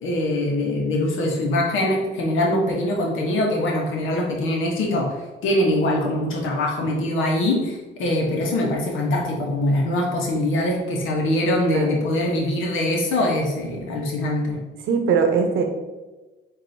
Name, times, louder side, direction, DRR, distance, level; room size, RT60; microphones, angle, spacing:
voice 1, 0.0-5.2 5.4-14.6, left 1 dB, 80° left, -1 dB, 1.0 m, -23 dB
voice 2, 14.9-15.6, right 6 dB, 80° right, 5 dB, 0.7 m, -20 dB
7.5 x 2.6 x 2.7 m, 1.2 s
cardioid pair, 90°, 20 cm